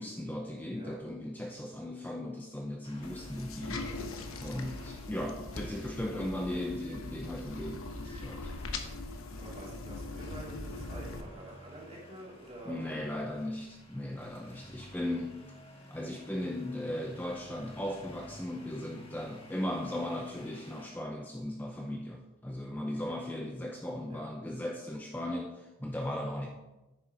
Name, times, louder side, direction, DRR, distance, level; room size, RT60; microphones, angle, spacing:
voice 1, 0.0-3.8 4.4-8.5 12.7-15.5 15.9-26.5, left 1 dB, 10° left, 1 dB, 0.5 m, -37 dB
voice 2, 0.7-1.0 9.3-13.4 24.1-24.6, right 2 dB, 30° right, -4 dB, 2.5 m, -48 dB
sound 1, 2.8-20.9, equal, 25° left, 1.4 m, -53 dB
sound 2, 3.0-11.2, left 2 dB, 85° left, 1.1 m, -41 dB
10.0 x 6.7 x 4.8 m, 1.0 s
head